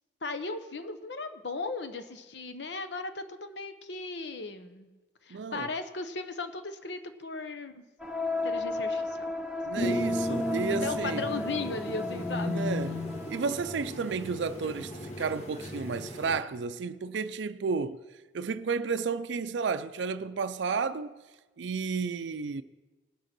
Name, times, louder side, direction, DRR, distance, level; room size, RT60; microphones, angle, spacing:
voice 1, 0.2-4.9 5.2-7.8 8.4-9.2 9.8-12.7, left 3 dB, 65° left, 1.0 m, -37 dB
voice 2, 5.3-5.7 9.6-11.2 12.4-13.0 13.3-18.0 18.3-21.1 21.6-22.6, right 5 dB, 75° right, 0.4 m, -32 dB
sound 1, 8.0-13.8, left 3 dB, 5° right, 0.7 m, -34 dB
sound 2, 9.7-16.4, left 1 dB, 40° left, 1.4 m, -35 dB
18.5 x 6.5 x 6.0 m
head